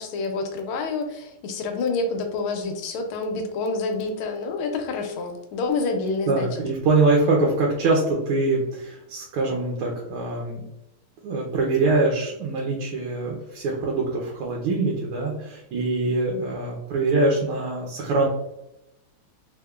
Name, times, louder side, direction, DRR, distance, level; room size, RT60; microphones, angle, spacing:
voice 1, 0.0-6.6, left 3 dB, 85° left, 5 dB, 1.5 m, -28 dB
voice 2, 6.3-10.6 11.2-18.3, right 3 dB, 90° right, -1 dB, 1.6 m, -23 dB
3.6 x 3.5 x 2.3 m, 0.89 s
omnidirectional pair, 2.3 m